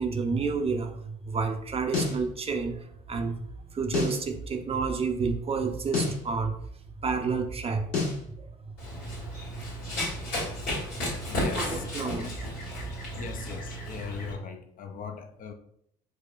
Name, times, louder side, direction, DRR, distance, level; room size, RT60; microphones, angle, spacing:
voice 1, 0.0-3.4 3.7-6.6 7.0-7.9 8.4-8.7 9.0-9.2 9.9-10.0 10.7-10.8 11.3-12.5, right 4 dB, 30° right, 5 dB, 0.5 m, -30 dB
sound 1, 1.9-2.2 3.9-4.2 5.9-6.2 7.9-8.2, left 3 dB, 65° left, 1.4 m, -28 dB
Run, 8.8-14.3, left 1 dB, 80° left, 1.4 m, -33 dB
voice 2, 11.3-11.8 12.1-12.3 13.2-15.5, left 6 dB, 40° left, 6 dB, 0.5 m, -39 dB
4.7 x 2.1 x 2.4 m, 0.70 s
hypercardioid pair, 60°, 21 cm